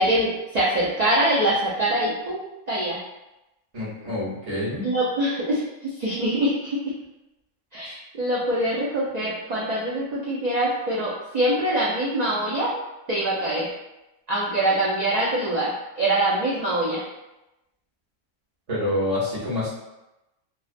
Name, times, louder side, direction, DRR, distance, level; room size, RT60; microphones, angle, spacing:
voice 1, 0.0-3.0 4.8-6.8 7.7-12.7 13.1-13.7 14.3-17.0, right 1 dB, 80° right, -7 dB, 0.3 m, -24 dB
voice 2, 3.7-4.9 7.8-8.0 18.7-19.7, left 1 dB, 35° right, -9 dB, 1.0 m, -27 dB
2.4 x 2.3 x 2.4 m, 0.97 s
omnidirectional pair, 1.3 m